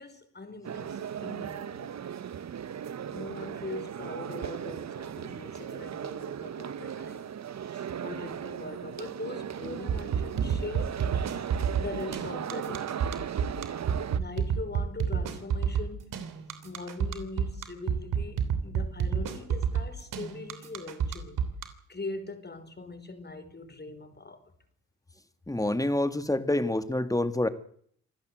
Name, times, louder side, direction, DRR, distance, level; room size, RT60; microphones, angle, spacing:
voice 1, 0.0-2.1 3.1-7.3 7.6-11.2 11.8-13.0 14.1-16.2 16.6-21.4 21.9-24.5, left 3 dB, 30° left, 5.0 m, -41 dB
sound 1, 0.6-14.2, right 9 dB, 55° right, 1.2 m, -37 dB
sound 2, 9.9-21.6, right 7 dB, 75° right, 3.2 m, -28 dB
voice 2, 25.5-27.5, left 1 dB, 10° left, 2.4 m, -27 dB
26.5 x 14.5 x 8.0 m
supercardioid pair, 55°, 33 cm